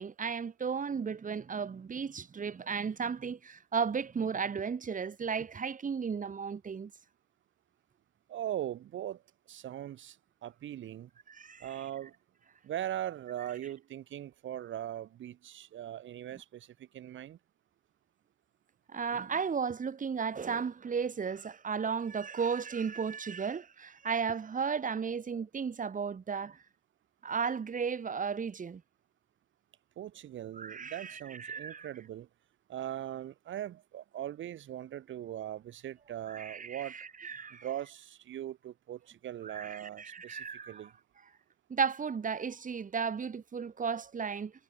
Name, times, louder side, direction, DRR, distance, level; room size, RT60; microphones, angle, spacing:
voice 1, 0.0-6.9 11.3-11.7 18.9-26.6 27.2-28.8 30.6-31.9 36.3-37.6 39.4-40.8 41.7-44.5, right 6 dB, 40° right, 4.8 m, -34 dB
voice 2, 8.3-9.2 9.5-10.2 10.4-11.1 11.6-12.1 12.6-17.4 30.0-32.3 32.7-37.0 37.6-40.9, right 11 dB, 75° right, 6.2 m, -40 dB
cardioid pair, 90°, 20 cm